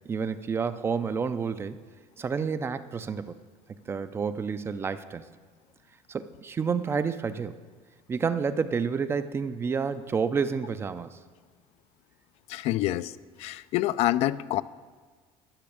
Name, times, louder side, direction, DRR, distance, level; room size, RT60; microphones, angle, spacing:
voice 1, 0.1-1.8 2.2-3.4 3.7-5.2 6.1-7.6 8.1-11.2, right 5 dB, 20° right, 12 dB, 0.4 m, -29 dB
voice 2, 12.5-13.1 13.4-14.6, left 15 dB, 55° left, 15 dB, 0.4 m, -26 dB
12.0 x 6.2 x 8.4 m, 1.5 s
cardioid pair, 155°, 13 cm